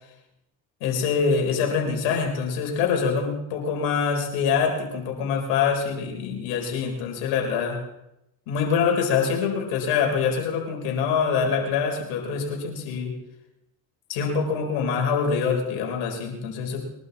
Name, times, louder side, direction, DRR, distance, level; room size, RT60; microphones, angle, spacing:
voice 1, 0.8-7.8 8.5-13.1 14.1-16.8, left 6 dB, 80° left, 2 dB, 4.4 m, -25 dB
23.0 x 12.0 x 4.1 m, 0.86 s
supercardioid pair, 70°, 42 cm